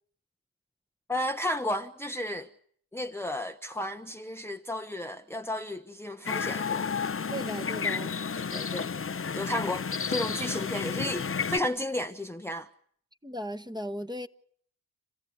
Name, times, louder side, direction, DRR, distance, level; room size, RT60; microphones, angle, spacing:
voice 1, 1.1-2.5 2.9-6.9 8.5-8.9 9.3-12.7, left 1 dB, 5° left, 1.1 m, -33 dB
sound 1, 6.3-11.6, left 6 dB, 35° left, 1.0 m, -31 dB
voice 2, 7.3-8.1 13.2-14.3, right 1 dB, 10° right, 1.6 m, -36 dB
28.0 x 15.5 x 9.7 m
supercardioid pair, 45°, 40 cm